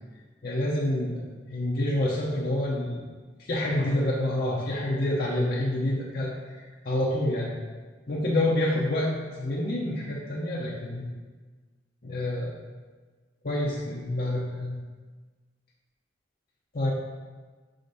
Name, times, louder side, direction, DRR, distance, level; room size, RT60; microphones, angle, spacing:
voice 1, 0.4-1.2 1.5-3.1 3.5-6.3 6.8-7.5 8.1-11.1 12.0-12.5 13.4-14.8 16.7-16.9, left 1 dB, 55° left, -5 dB, 0.8 m, -27 dB
5.6 x 5.0 x 4.1 m, 1.4 s
head